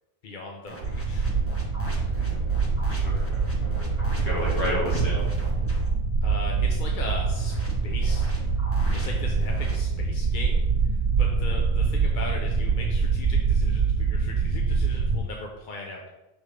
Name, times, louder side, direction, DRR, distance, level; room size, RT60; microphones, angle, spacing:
voice 1, 0.2-1.3 6.2-7.5 7.8-8.3 8.9-16.2, left 2 dB, 55° left, 0 dB, 0.8 m, -39 dB
sound 1, 0.7-5.9 7.3-9.8, left 1 dB, 15° left, 1.0 m, -42 dB
sound 2, 0.8-15.2, right 4 dB, 80° right, 1.0 m, -25 dB
voice 2, 1.8-5.3, equal, 70° left, -5 dB, 1.9 m, -32 dB
6.3 x 3.5 x 4.8 m, 1.0 s
omnidirectional pair, 1.0 m